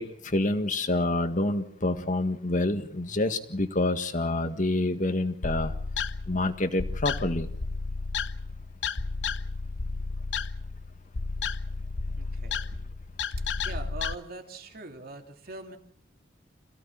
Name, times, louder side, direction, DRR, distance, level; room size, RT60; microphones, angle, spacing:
voice 1, 0.0-5.7 6.3-7.5, left 2 dB, 45° left, 8 dB, 1.8 m, -27 dB
sound 1, 5.4-14.2, left 4 dB, 75° left, 0.9 m, -33 dB
voice 2, 12.2-12.6 13.5-15.8, right 2 dB, 55° right, 4 dB, 2.9 m, -42 dB
27.5 x 16.5 x 7.1 m, 0.65 s
head